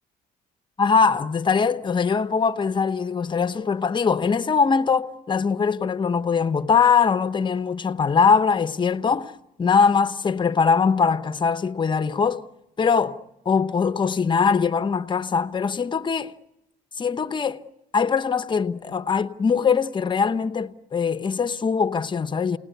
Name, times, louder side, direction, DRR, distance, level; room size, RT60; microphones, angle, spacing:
voice 1, 0.8-12.4 12.8-16.3 17.0-17.6 17.9-22.6, left 5 dB, 30° left, 1.1 m, -22 dB
29.0 x 19.5 x 9.3 m
cardioid pair, 110°, 17 cm